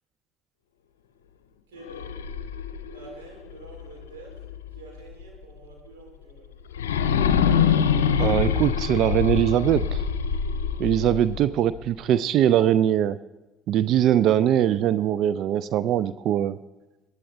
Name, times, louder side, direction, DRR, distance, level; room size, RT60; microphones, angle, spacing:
voice 1, 1.7-2.1 2.9-4.4 4.7-6.5 11.0-11.2, right 4 dB, 75° right, -2 dB, 4.4 m, -47 dB
sound 1, 1.8-4.8 5.2-5.3 6.7-11.8, left 7 dB, 80° left, 0.6 m, -25 dB
voice 2, 8.2-10.0 10.8-13.2 13.7-16.6, right 11 dB, 55° right, 15 dB, 0.4 m, -21 dB
19.0 x 10.5 x 3.9 m, 1.1 s
figure-of-eight pair, 50°, 0 cm